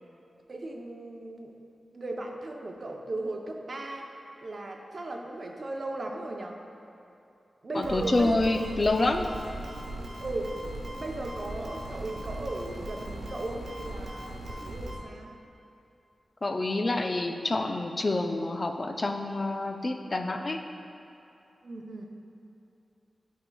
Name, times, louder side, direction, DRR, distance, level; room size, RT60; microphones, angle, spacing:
voice 1, 0.5-1.5 1.9-4.1 4.4-6.6 7.6-8.7 10.2-10.5 10.8-15.3 21.6-22.1, right 2 dB, 45° right, 1 dB, 0.6 m, -36 dB
voice 2, 7.7-9.3 16.4-20.6, left 2 dB, 35° left, 5 dB, 0.4 m, -27 dB
sound 1, 7.8-15.0, right 1 dB, 85° right, 1.0 m, -39 dB
11.0 x 4.6 x 2.3 m, 2.8 s
wide cardioid pair, 135°, 0 cm